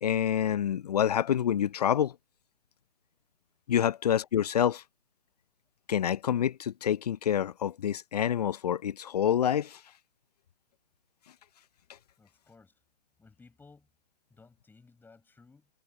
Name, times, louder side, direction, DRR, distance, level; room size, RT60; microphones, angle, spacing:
voice 1, 0.0-2.1 3.7-4.8 5.9-9.8, left 9 dB, 35° left, 0.6 m, -27 dB
voice 2, 12.2-12.8 13.2-13.9 14.3-15.7, left 4 dB, 5° left, 5.2 m, -58 dB
figure-of-eight pair, 135°, 37 cm